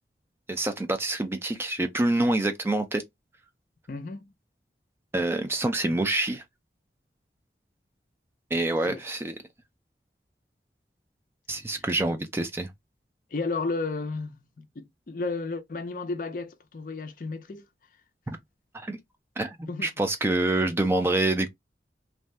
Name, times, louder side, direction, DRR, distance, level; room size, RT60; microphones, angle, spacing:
voice 1, 0.5-3.0 5.1-6.4 8.5-9.3 11.5-12.7 18.3-18.4 18.7-19.0 19.4-19.6 19.8-21.5, right 2 dB, 15° right, 0.3 m, -26 dB
voice 2, 3.9-4.3 8.9-9.0 13.3-17.7 19.7-19.9, left 3 dB, 50° left, 0.4 m, -33 dB
2.6 x 2.2 x 3.1 m
head